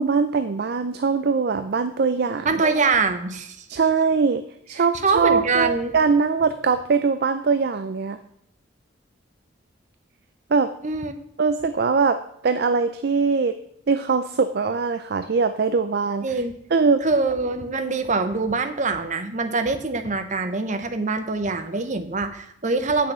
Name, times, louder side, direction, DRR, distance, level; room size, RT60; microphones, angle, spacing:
voice 1, 0.0-2.5 3.7-8.2 10.5-10.7 11.4-13.6 13.9-16.3 16.7-17.0, right 5 dB, 55° right, 10 dB, 0.4 m, -22 dB
voice 2, 2.4-3.7 4.8-5.9 10.8-11.2 16.2-16.5 17.0-23.1, right 3 dB, 40° right, 8 dB, 0.8 m, -24 dB
8.2 x 6.3 x 5.5 m, 0.74 s
head